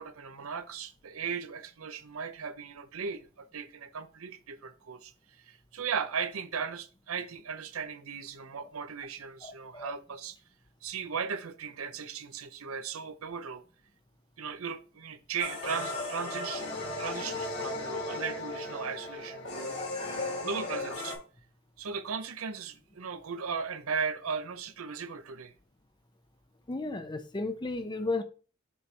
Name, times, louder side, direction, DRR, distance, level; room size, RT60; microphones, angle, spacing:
voice 1, 0.0-10.4 10.8-13.6 14.4-16.7 17.0-19.7 20.1-21.2 21.8-25.5, right 6 dB, 85° right, 0.6 m, -37 dB
voice 2, 9.4-9.9 19.8-20.5 26.7-28.2, left 3 dB, 20° left, 0.6 m, -35 dB
sound 1, 15.4-21.2, left 2 dB, 55° left, 1.8 m, -36 dB
6.9 x 4.2 x 3.3 m
head